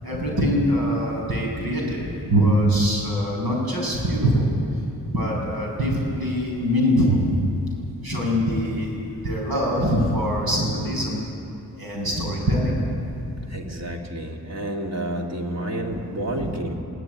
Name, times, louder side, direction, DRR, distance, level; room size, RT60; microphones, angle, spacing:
voice 1, 0.0-4.5 5.1-7.3 8.0-9.0 9.2-11.2 11.8-13.1 16.3-16.5, equal, 90° right, -2 dB, 7.1 m, -23 dB
voice 2, 13.5-16.7, right 1 dB, 45° right, 0 dB, 2.9 m, -30 dB
22.5 x 16.5 x 9.7 m, 2.7 s
wide cardioid pair, 145°, 35 cm